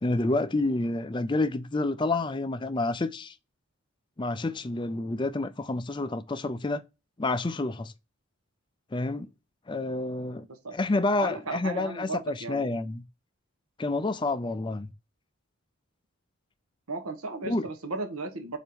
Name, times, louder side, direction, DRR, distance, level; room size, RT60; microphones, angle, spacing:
voice 1, 0.0-3.3 4.2-6.8 7.2-7.9 8.9-9.3 9.7-10.5 10.7-13.0 13.8-14.9 17.4-17.7, left 2 dB, 20° left, 0.4 m, -29 dB
voice 2, 11.2-12.8 16.9-18.6, right 2 dB, 85° right, 1.2 m, -35 dB
4.5 x 4.2 x 5.2 m
head